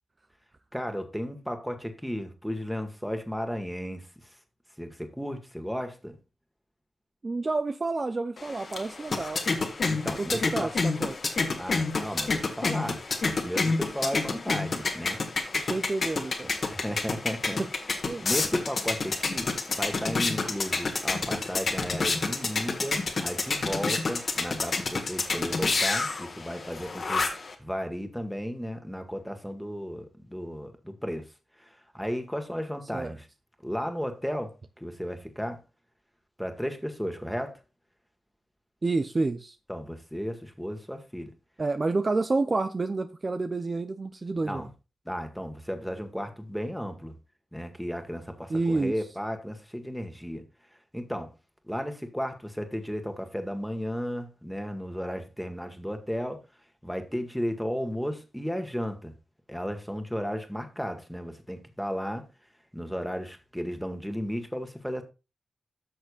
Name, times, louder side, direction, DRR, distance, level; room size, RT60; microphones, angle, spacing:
voice 1, 0.7-4.3 4.8-6.2 9.8-10.7 11.6-15.2 16.6-17.7 18.2-27.3 27.6-31.3 31.6-33.3 33.6-35.6 36.4-37.6 39.7-41.3 44.4-44.7 45.1-47.1 47.5-50.5 50.9-51.3 51.7-56.4 56.8-59.1 59.5-62.3 62.7-65.0, equal, ahead, 1.8 m, -34 dB
voice 2, 7.2-9.4 10.2-11.1 14.0-14.2 15.5-16.5 18.1-18.3 32.9-33.1 38.8-39.6 41.6-44.7 48.5-48.9, right 3 dB, 40° right, 0.6 m, -29 dB
sound 1, 8.4-27.5, left 3 dB, 60° left, 1.6 m, -29 dB
13.5 x 6.4 x 2.4 m
cardioid pair, 55°, 0 cm